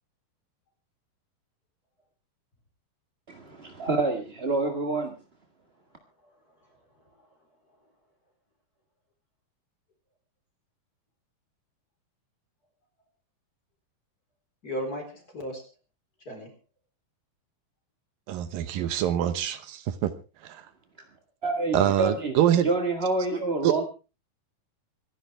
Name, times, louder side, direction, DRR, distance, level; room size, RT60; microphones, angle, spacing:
voice 1, 3.3-5.1 21.4-22.3 22.6-23.8, right 3 dB, 45° right, 3 dB, 0.8 m, -27 dB
voice 2, 6.0-7.4 7.7-7.9 14.6-15.7 16.2-16.6, equal, 25° left, 3 dB, 4.3 m, -38 dB
voice 3, 18.3-20.1 20.4-20.6 21.7-22.7 23.6-23.7, right 11 dB, 75° right, 11 dB, 2.7 m, -25 dB
25.5 x 11.0 x 3.4 m, 0.32 s
omnidirectional pair, 4.2 m